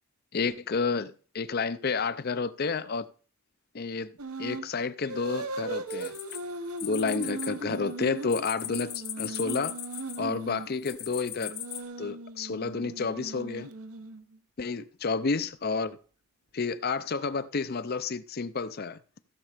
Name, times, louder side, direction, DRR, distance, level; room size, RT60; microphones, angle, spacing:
voice 1, 0.3-3.1 3.7-4.1 4.4-6.1 6.8-9.8 10.2-11.6 12.0-13.7 14.6-16.0 16.5-19.0, left 4 dB, 45° left, 0.6 m, -30 dB
sound 1, 4.2-4.7 5.0-10.7 11.4-14.4, right 3 dB, 90° right, 1.1 m, -38 dB
sound 2, 5.9-7.5 7.7-10.3 10.8-11.8, left 11 dB, 85° left, 2.4 m, -38 dB
15.0 x 6.5 x 5.1 m
head